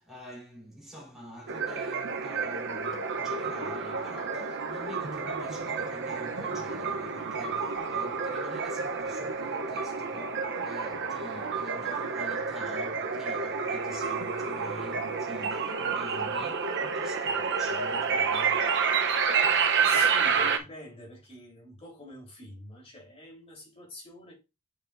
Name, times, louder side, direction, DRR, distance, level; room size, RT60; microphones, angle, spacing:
voice 1, 0.0-18.8, equal, ahead, 3.6 m, -47 dB
sound 1, 1.5-20.6, right 5 dB, 55° right, 0.8 m, -29 dB
voice 2, 19.8-24.3, left 1 dB, 30° left, 3.5 m, -46 dB
8.6 x 5.0 x 2.6 m
head